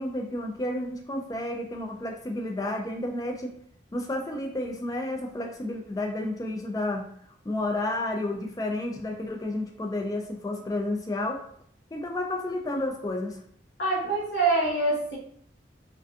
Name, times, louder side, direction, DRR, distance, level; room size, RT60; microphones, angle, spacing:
voice 1, 0.0-3.5 3.9-7.0 7.4-11.4 11.9-13.4, left 1 dB, 20° left, 3 dB, 0.3 m, -31 dB
voice 2, 13.8-15.2, right 3 dB, 65° left, -6 dB, 1.1 m, -25 dB
2.5 x 2.3 x 2.3 m, 0.63 s
head